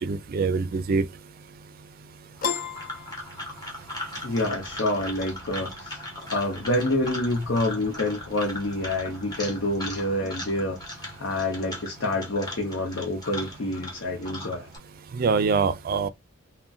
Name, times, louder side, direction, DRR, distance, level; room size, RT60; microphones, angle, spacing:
voice 1, 0.0-1.0 15.1-16.1, right 4 dB, 50° right, 0.4 m, -24 dB
Piano, 2.4-4.0, left 7 dB, 45° left, 0.4 m, -32 dB
sound 1, 2.4-14.8, left 1 dB, 20° left, 1.0 m, -39 dB
voice 2, 4.2-6.0 6.3-14.7, left 1 dB, 80° left, 0.7 m, -27 dB
3.7 x 2.1 x 2.4 m
head